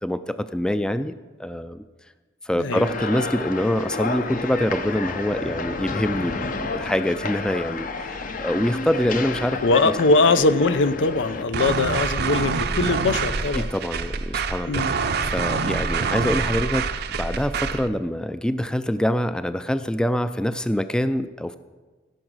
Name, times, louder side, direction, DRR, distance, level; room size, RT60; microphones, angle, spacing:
voice 1, 0.0-1.1 1.4-1.8 2.4-9.6 9.8-10.0 13.5-21.6, equal, 5° left, 12 dB, 0.3 m, -25 dB
voice 2, 2.6-2.9 9.6-13.7 14.7-14.9, left 3 dB, 85° left, 13 dB, 0.6 m, -21 dB
sound 1, 2.7-11.4, left 3 dB, 50° left, 0.7 m, -30 dB
sound 2, 11.5-17.9, right 5 dB, 60° right, 0.6 m, -26 dB
16.0 x 6.3 x 6.1 m, 1.3 s
head